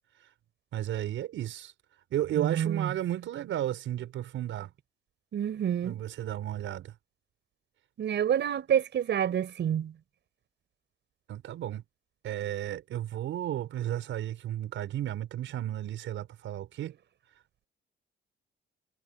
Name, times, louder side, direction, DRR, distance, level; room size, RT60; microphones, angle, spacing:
voice 1, 0.7-1.7 2.1-4.7 5.8-6.9 11.3-11.8 12.2-16.9, right 12 dB, 80° right, 5.4 m, -33 dB
voice 2, 2.3-2.9 5.3-6.0 8.0-9.9, right 9 dB, 65° right, 5.4 m, -28 dB
cardioid pair, 90°, 20 cm